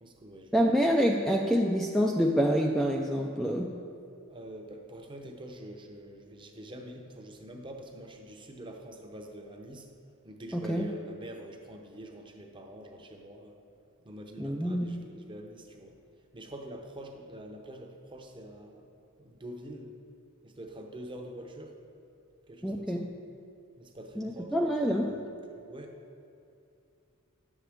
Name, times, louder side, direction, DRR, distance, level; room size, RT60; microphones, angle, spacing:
voice 1, 0.0-0.7 1.3-1.4 4.3-9.9 10.2-13.5 14.0-16.0 16.3-18.8 19.2-19.9 20.4-21.8 22.5-23.1 23.8-26.0, right 1 dB, 20° right, 3 dB, 0.7 m, -45 dB
voice 2, 0.5-3.7 10.5-10.9 14.4-15.0 22.6-23.1 24.2-25.2, equal, ahead, 0 dB, 0.3 m, -27 dB
10.0 x 7.3 x 3.5 m, 2.5 s
head